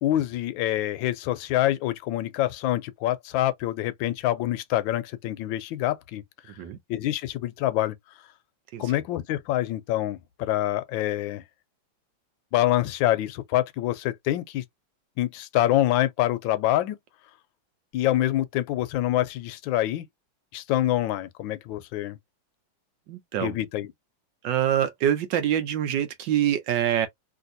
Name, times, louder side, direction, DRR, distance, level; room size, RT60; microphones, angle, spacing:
voice 1, 0.0-6.2 6.9-8.0 8.8-11.4 12.5-14.6 15.2-17.0 17.9-20.0 20.5-22.2 23.4-23.9, left 14 dB, 80° left, 1.3 m, -26 dB
voice 2, 23.1-23.6 24.4-27.1, right 10 dB, 75° right, 1.3 m, -25 dB
3.3 x 2.7 x 2.6 m
omnidirectional pair, 2.2 m